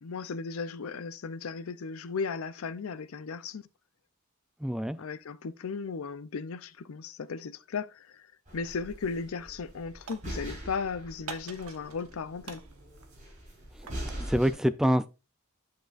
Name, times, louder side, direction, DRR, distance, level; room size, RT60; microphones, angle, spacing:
voice 1, 0.0-3.6 5.0-8.3 8.5-12.6, left 5 dB, 75° left, 0.5 m, -36 dB
voice 2, 4.6-5.0 13.8-15.1, equal, 5° right, 0.4 m, -27 dB
sound 1, 8.5-14.5, equal, 35° right, 4.6 m, -42 dB
sound 2, 8.9-9.2 9.5-10.8 11.3-12.2 12.4-14.1, right 5 dB, 90° right, 1.0 m, -46 dB
9.4 x 6.4 x 2.5 m
head